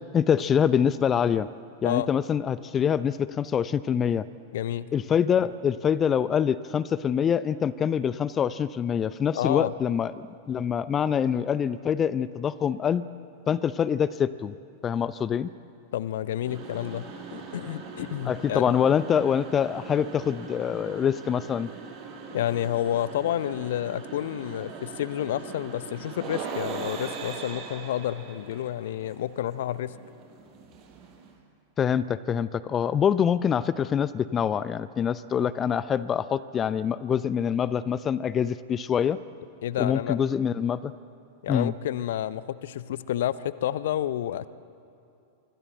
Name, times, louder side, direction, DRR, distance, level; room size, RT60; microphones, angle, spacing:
voice 1, 0.1-1.5 1.8-4.3 4.9-13.0 13.5-14.5 14.8-15.5 18.3-21.7 31.8-39.2 39.8-40.9 41.5-41.7, left 8 dB, 25° left, 17 dB, 0.6 m, -25 dB
voice 2, 4.5-4.9 9.3-9.8 15.9-18.7 22.3-29.9 39.6-40.2 41.4-44.5, left 12 dB, 55° left, 17 dB, 0.8 m, -30 dB
sound 1, 16.4-31.4, right 5 dB, 35° right, 5.7 m, -41 dB
26.0 x 24.5 x 7.8 m, 2.7 s
figure-of-eight pair, 90°, 0 cm